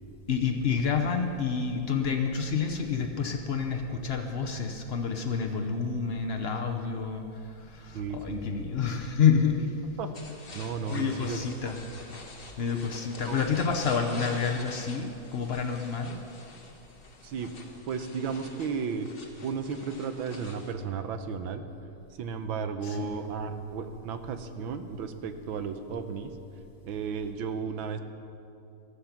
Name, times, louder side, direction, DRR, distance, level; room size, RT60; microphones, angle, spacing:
voice 1, 0.3-9.9 10.9-11.8 12.6-16.2 22.8-23.1, left 6 dB, 85° left, 3 dB, 0.5 m, -28 dB
voice 2, 7.9-8.7 10.0-10.1 10.5-11.7 13.2-13.4 17.2-17.5 17.9-19.1 19.4-21.6 22.2-26.3 26.8-28.0, right 5 dB, 75° right, 8 dB, 1.6 m, -34 dB
sound 1, 10.1-20.7, left 2 dB, 30° left, 1.3 m, -46 dB
14.5 x 13.0 x 5.9 m, 2.7 s
omnidirectional pair, 2.3 m